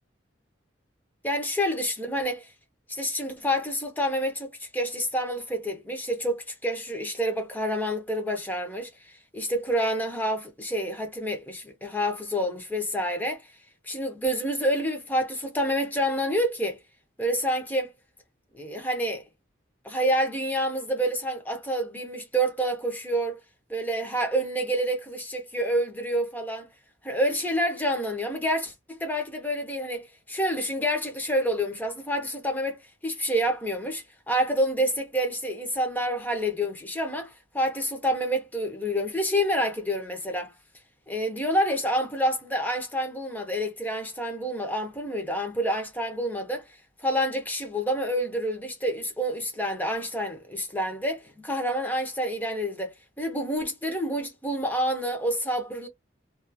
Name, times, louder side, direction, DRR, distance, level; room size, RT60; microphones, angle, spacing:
voice 1, 1.2-2.5 2.9-13.4 13.8-16.8 17.2-17.9 18.5-19.2 19.8-23.4 23.7-26.7 27.0-40.5 41.1-46.6 47.0-55.9, equal, 10° left, 0.7 m, -28 dB
2.9 x 2.3 x 2.3 m
head